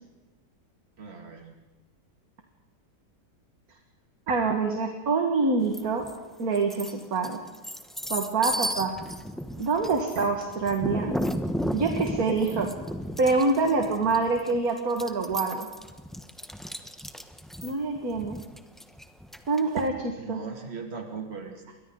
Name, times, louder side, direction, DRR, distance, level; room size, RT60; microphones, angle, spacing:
voice 1, 1.0-1.4 20.2-21.7, right 5 dB, 35° right, 2 dB, 2.8 m, -38 dB
voice 2, 4.3-6.0 6.4-7.4 8.1-8.9 9.6-11.1 11.7-12.7 13.2-15.7 17.6-18.4 19.5-20.4, right 3 dB, 60° right, 3 dB, 2.3 m, -26 dB
sound 1, 5.7-6.2 6.5-19.8, equal, ahead, 0.8 m, -34 dB
29.0 x 23.0 x 4.0 m, 1.1 s
omnidirectional pair, 1.8 m